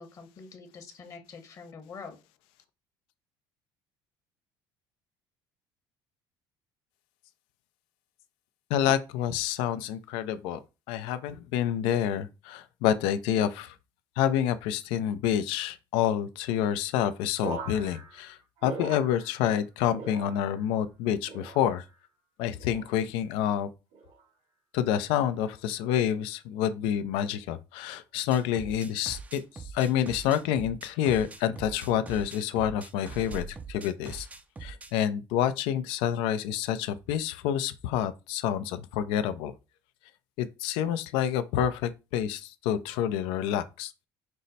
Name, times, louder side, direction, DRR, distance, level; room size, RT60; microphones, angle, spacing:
voice 1, 0.0-2.2, left 5 dB, 40° left, 0.9 m, -45 dB
voice 2, 8.7-10.6 10.9-13.7 14.2-21.8 22.4-23.7 24.7-34.3 34.6-39.5 40.4-43.9, left 10 dB, 90° left, 0.5 m, -28 dB
sound 1, 17.4-19.6 19.9-20.8 21.3-22.0 22.6-23.0 23.9-24.3 25.2-25.5, right 5 dB, 90° right, 1.9 m, -42 dB
sound 2, 28.3-34.9, right 4 dB, 15° right, 0.4 m, -42 dB
5.4 x 2.1 x 4.0 m
cardioid pair, 125°, 9 cm